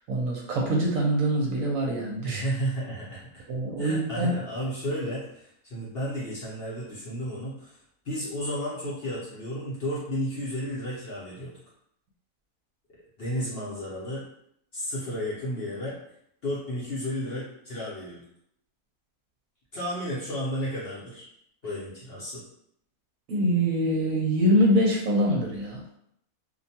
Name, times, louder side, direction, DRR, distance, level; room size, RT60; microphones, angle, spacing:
voice 1, 0.1-2.4 3.5-4.3 23.3-25.8, equal, 70° right, -1 dB, 1.0 m, -24 dB
voice 2, 2.2-3.4 3.8-7.8 8.0-11.5 13.2-14.2 14.7-16.0 16.4-18.2 19.7-21.3 21.6-22.4, equal, 50° left, -7 dB, 0.8 m, -32 dB
2.5 x 2.2 x 2.7 m, 0.72 s
omnidirectional pair, 1.6 m